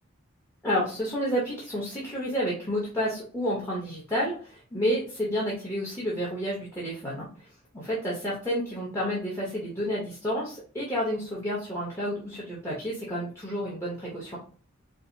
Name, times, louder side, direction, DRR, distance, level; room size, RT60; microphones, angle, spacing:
voice 1, 0.6-7.5 7.7-14.4, equal, 15° left, -6 dB, 0.9 m, -30 dB
4.6 x 2.0 x 2.7 m, 0.40 s
head